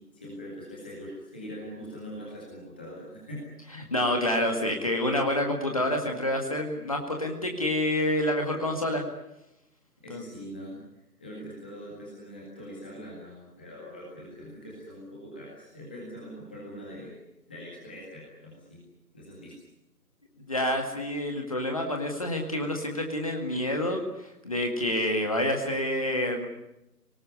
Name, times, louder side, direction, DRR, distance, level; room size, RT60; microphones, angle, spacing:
voice 1, 0.0-3.4 10.0-17.2 17.5-18.9 19.1-19.5, equal, 5° left, -5 dB, 1.9 m, -42 dB
voice 2, 3.9-9.0 10.1-10.2 20.5-26.5, left 1 dB, 20° left, 3 dB, 2.0 m, -28 dB
25.5 x 19.0 x 9.8 m, 0.88 s
figure-of-eight pair, 165°, 48 cm